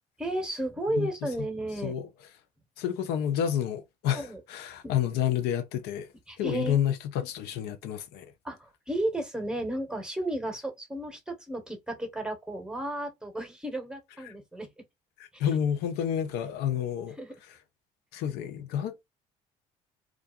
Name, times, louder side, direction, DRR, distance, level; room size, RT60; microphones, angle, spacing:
voice 1, 0.2-1.9 4.1-4.4 4.8-4.9 6.3-6.9 8.4-14.8 17.2-17.4, right 1 dB, 5° right, 1.2 m, -33 dB
voice 2, 2.8-6.1 6.4-8.3 14.2-14.3 15.4-17.2 18.1-19.1, left 9 dB, 75° left, 0.6 m, -29 dB
2.5 x 2.3 x 2.4 m
hypercardioid pair, 65°, 17 cm